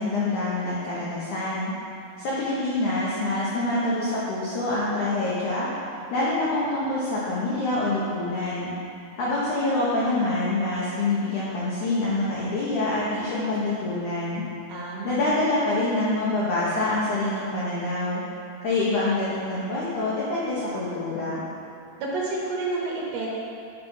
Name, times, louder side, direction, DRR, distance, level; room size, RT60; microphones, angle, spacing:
voice 1, 0.0-1.7 2.2-5.7 6.1-8.7 9.2-14.4 15.0-18.2 18.6-21.4, left 2 dB, 85° left, -7 dB, 1.7 m, -26 dB
voice 2, 14.7-15.3 22.0-23.4, right 3 dB, 75° right, -3 dB, 2.5 m, -30 dB
8.7 x 4.7 x 5.5 m, 2.5 s
omnidirectional pair, 5.2 m